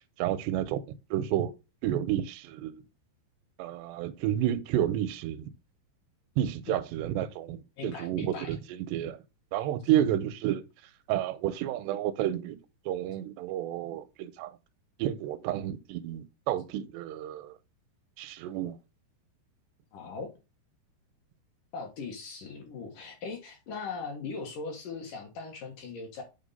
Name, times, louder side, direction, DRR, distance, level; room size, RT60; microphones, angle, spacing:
voice 1, 0.2-0.8 1.1-1.5 1.8-2.8 3.6-5.5 6.4-8.6 8.9-9.2 9.5-10.6 11.1-12.6 12.9-14.5 15.0-17.5 18.2-18.8, right 11 dB, 85° right, 2.8 m, -30 dB
voice 2, 7.8-8.6 19.9-20.3 21.7-26.2, left 4 dB, 65° left, 2.4 m, -39 dB
8.7 x 3.4 x 5.3 m
omnidirectional pair, 4.8 m